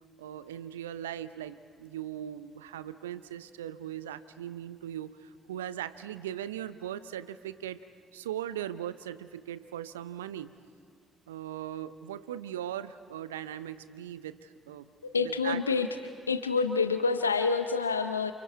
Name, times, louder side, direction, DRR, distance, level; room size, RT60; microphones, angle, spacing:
voice 1, 0.2-7.8 8.1-10.5 11.3-14.9 15.2-15.9, right 11 dB, 80° right, 14 dB, 0.6 m, -39 dB
voice 2, 15.0-15.9 16.3-18.3, left 4 dB, 90° left, 9 dB, 0.5 m, -27 dB
29.0 x 28.0 x 4.7 m, 2.2 s
figure-of-eight pair, 45°, 0 cm